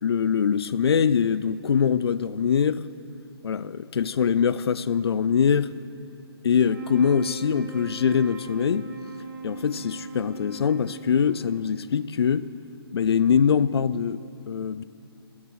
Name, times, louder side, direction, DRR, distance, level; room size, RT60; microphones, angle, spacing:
voice 1, 0.0-2.9 3.4-5.7 6.4-8.9 9.4-12.5 12.9-14.8, left 7 dB, 70° left, 0.5 m, -23 dB
sound 1, 6.6-12.0, right 5 dB, 50° right, 1.3 m, -39 dB
16.5 x 7.2 x 6.5 m
hypercardioid pair, 160°, 14 cm